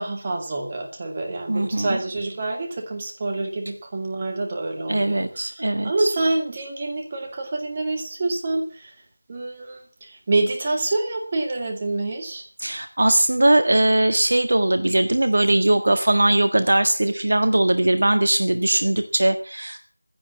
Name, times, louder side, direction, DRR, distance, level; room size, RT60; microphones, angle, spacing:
voice 1, 0.0-5.2 5.5-8.9 9.3-12.4, right 2 dB, 15° right, 3 dB, 2.3 m, -27 dB
voice 2, 1.5-2.0 4.9-6.1 12.6-19.8, right 1 dB, 45° right, 8 dB, 1.7 m, -20 dB
16.0 x 12.0 x 7.0 m, 0.41 s
figure-of-eight pair, 175°, 0 cm